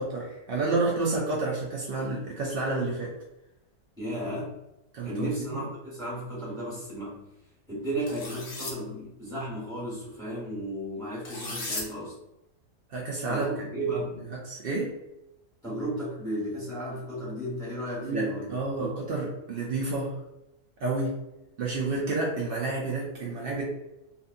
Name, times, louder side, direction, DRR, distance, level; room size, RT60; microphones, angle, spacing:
voice 1, 0.0-3.1 4.9-5.7 12.9-13.5 14.4-14.9 18.0-20.2 20.8-21.2 21.6-23.6, right 3 dB, 85° right, -3 dB, 0.5 m, -30 dB
voice 2, 4.0-4.6 5.0-7.2 7.7-12.2 13.3-14.2 15.6-18.9, right 1 dB, 5° left, -7 dB, 1.2 m, -34 dB
sound 1, 8.1-8.7 11.2-11.8, left 2 dB, 75° left, 0.4 m, -35 dB
2.6 x 2.4 x 2.5 m, 0.91 s
omnidirectional pair, 1.6 m